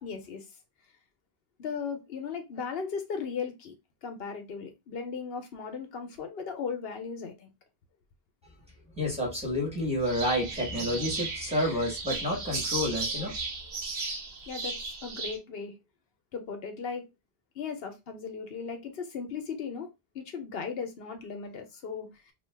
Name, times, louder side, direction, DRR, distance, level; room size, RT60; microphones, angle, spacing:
voice 1, 0.0-0.5 1.6-3.7 4.0-7.5 14.5-15.8 16.3-17.1 17.5-19.9 20.1-22.3, left 5 dB, 70° left, 0.9 m, -37 dB
voice 2, 9.0-13.4, left 1 dB, 5° right, 1.2 m, -29 dB
sound 1, 10.0-15.4, right 3 dB, 85° right, 1.2 m, -35 dB
2.7 x 2.3 x 3.2 m
omnidirectional pair, 1.1 m